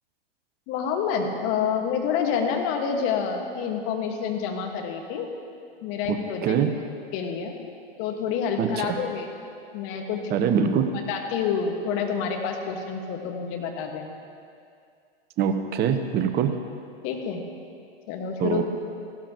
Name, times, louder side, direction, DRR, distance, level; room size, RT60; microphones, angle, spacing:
voice 1, 0.7-5.3 5.8-6.6 7.1-7.5 8.0-9.3 9.7-10.3 11.1-14.1 17.0-17.4 18.1-18.6, left 6 dB, 45° left, 3 dB, 1.7 m, -28 dB
voice 2, 6.1-6.7 8.6-8.9 10.3-10.9 15.4-16.5 18.4-18.6, right 7 dB, 30° right, 7 dB, 0.9 m, -23 dB
16.0 x 13.0 x 3.0 m, 2.3 s
hypercardioid pair, 105°, 30 cm